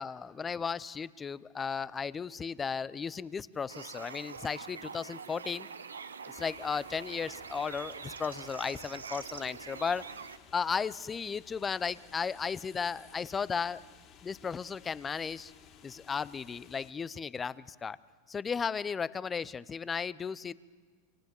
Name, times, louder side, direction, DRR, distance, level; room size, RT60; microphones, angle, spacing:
voice 1, 0.0-5.7 6.3-10.0 10.5-13.8 14.2-15.5 15.8-18.0 18.3-20.5, left 6 dB, 20° left, 19 dB, 0.8 m, -35 dB
sound 1, 3.7-10.4, right 6 dB, 90° right, 1.1 m, -45 dB
sound 2, 6.3-16.9, left 8 dB, 40° left, 3.6 m, -58 dB
28.0 x 26.5 x 7.2 m, 1.5 s
hypercardioid pair, 95°, 0 cm